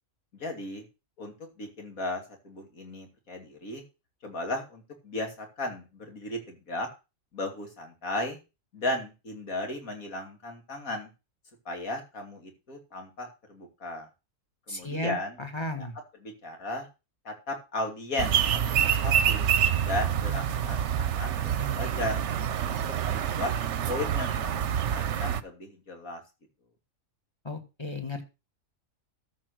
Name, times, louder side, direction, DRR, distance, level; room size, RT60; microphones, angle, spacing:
voice 1, 0.3-0.8 1.2-3.8 4.2-6.9 7.3-8.4 8.7-11.1 11.6-14.1 14.7-15.4 15.8-15.9 16.2-16.9 17.2-19.5 19.8-22.2 22.6-22.8 23.0-23.5 23.9-26.2, left 1 dB, 85° left, 3 dB, 2.9 m, -35 dB
voice 2, 14.7-15.9 27.4-28.2, left 2 dB, 20° left, 6 dB, 1.6 m, -34 dB
sound 1, 18.2-25.4, right 9 dB, 60° right, 1.0 m, -27 dB
13.5 x 5.0 x 6.3 m, 0.29 s
omnidirectional pair, 1.4 m